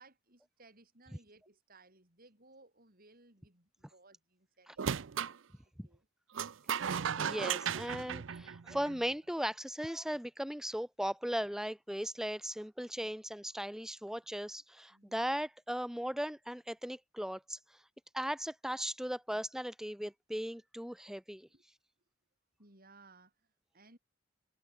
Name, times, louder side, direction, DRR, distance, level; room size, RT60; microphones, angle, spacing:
voice 1, 0.0-5.5 5.8-6.1 8.5-8.7 14.9-15.2 21.5-21.6 22.6-24.0, right 3 dB, 45° right, 7.1 m, -62 dB
sound 1, 4.8-5.4 6.3-9.1, right 7 dB, 65° right, 0.5 m, -35 dB
voice 2, 7.2-17.6 18.1-21.5, equal, ahead, 0.9 m, -37 dB
head